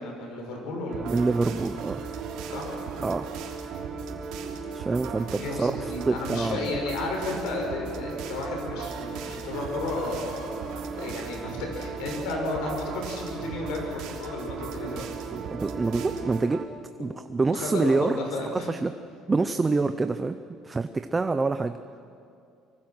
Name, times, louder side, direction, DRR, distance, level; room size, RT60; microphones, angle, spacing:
voice 1, 0.0-1.2 2.5-2.7 5.3-10.7 11.0-15.1 17.0-17.2 17.4-18.7, left 2 dB, 80° left, 1 dB, 6.9 m, -33 dB
sound 1, 0.9-16.6, right 5 dB, 40° right, 1.4 m, -38 dB
sound 2, 0.9-16.5, right 5 dB, 75° right, 3.1 m, -40 dB
voice 2, 1.1-2.0 3.0-3.3 4.7-6.7 15.3-16.6 17.0-18.2 18.7-18.9 19.3-20.4 20.6-21.8, right 3 dB, 15° right, 9 dB, 0.6 m, -26 dB
25.0 x 24.0 x 6.2 m, 2.4 s
cardioid pair, 145°, 0 cm